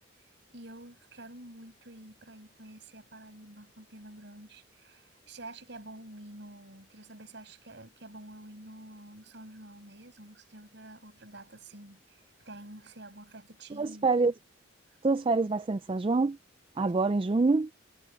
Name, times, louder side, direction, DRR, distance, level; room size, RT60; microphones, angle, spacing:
voice 1, 0.5-14.1, right 1 dB, 60° right, 6.2 m, -49 dB
voice 2, 13.8-14.3 15.0-16.4 16.8-17.7, right 3 dB, 25° right, 0.4 m, -26 dB
head